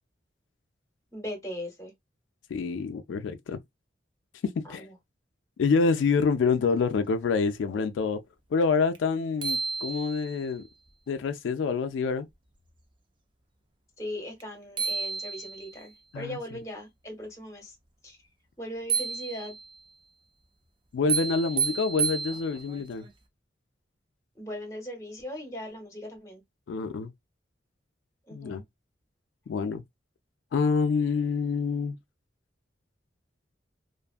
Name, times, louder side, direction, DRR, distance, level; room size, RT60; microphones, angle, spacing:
voice 1, 1.1-1.9 4.6-4.9 14.0-17.8 18.0-18.2 18.6-19.5 24.3-26.4 28.3-28.6, left 1 dB, 15° left, 1.0 m, -39 dB
voice 2, 2.5-3.6 4.4-4.9 5.6-8.2 8.5-10.6 11.1-12.3 16.1-16.4 20.9-23.1 26.7-27.1 28.3-28.6 29.5-29.8 30.5-32.0, left 5 dB, 85° left, 0.3 m, -27 dB
sound 1, 8.9-9.0 9.4-10.5 14.4-14.5 14.8-15.8 18.9-19.8 21.1-22.8, right 6 dB, 25° right, 0.4 m, -31 dB
2.5 x 2.3 x 2.4 m
head